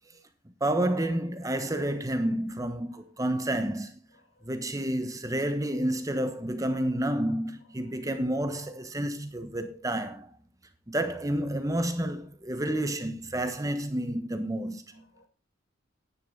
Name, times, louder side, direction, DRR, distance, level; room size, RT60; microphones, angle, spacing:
voice 1, 0.6-4.0 4.4-10.3 10.9-15.0, right 1 dB, 20° right, 1.2 m, -30 dB
voice 2, 4.1-4.5 7.8-8.5 12.0-12.1 12.6-12.8 14.9-15.3, left 1 dB, 80° left, 3.0 m, -64 dB
10.5 x 9.9 x 4.0 m
head